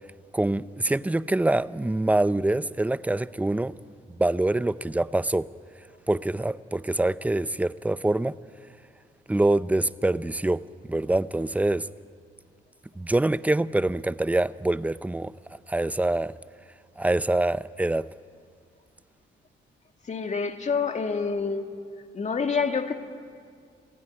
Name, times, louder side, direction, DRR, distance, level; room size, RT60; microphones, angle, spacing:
voice 1, 0.3-3.7 4.2-5.5 6.1-8.3 9.3-10.6 10.9-11.9 13.0-15.3 15.7-16.3 17.0-18.1, right 2 dB, 5° right, 16 dB, 0.5 m, -25 dB
voice 2, 20.1-21.8 22.1-22.9, left 5 dB, 35° left, 6 dB, 1.9 m, -27 dB
25.0 x 16.0 x 9.9 m, 2.2 s
cardioid pair, 90°, 20 cm